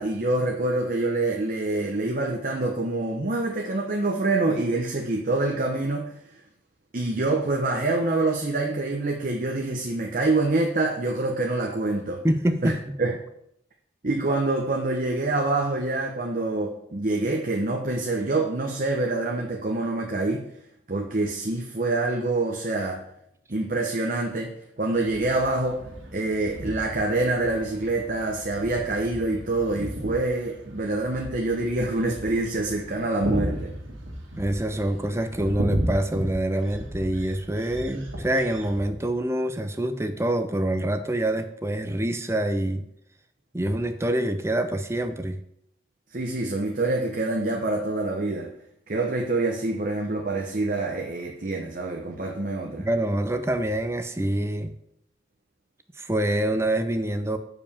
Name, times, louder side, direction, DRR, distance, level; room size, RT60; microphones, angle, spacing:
voice 1, 0.0-6.1 6.9-12.2 12.6-12.7 13.0-13.2 14.0-20.5 20.9-23.0 23.5-24.5 24.8-25.8 26.1-33.7 46.1-48.5 48.9-52.9, right 2 dB, 45° right, 1 dB, 0.9 m, -26 dB
voice 2, 12.2-13.0 34.4-42.8 43.5-45.4 52.8-54.7 56.0-57.4, right 1 dB, 15° right, 8 dB, 0.5 m, -26 dB
sound 1, 24.9-38.9, equal, 90° right, 1.9 m, -35 dB
7.0 x 5.0 x 7.0 m, 0.74 s
head